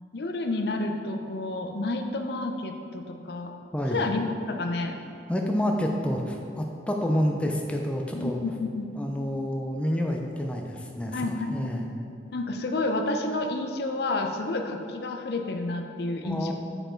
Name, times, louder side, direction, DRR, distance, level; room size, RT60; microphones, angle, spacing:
voice 1, 0.1-3.5 3.9-5.0 8.1-8.9 11.1-11.7 12.3-16.5, left 2 dB, 65° left, 5 dB, 0.5 m, -30 dB
voice 2, 3.7-4.1 5.3-8.4 8.9-11.9 16.2-16.5, equal, 5° left, 0 dB, 0.4 m, -28 dB
7.7 x 4.5 x 4.4 m, 2.5 s
head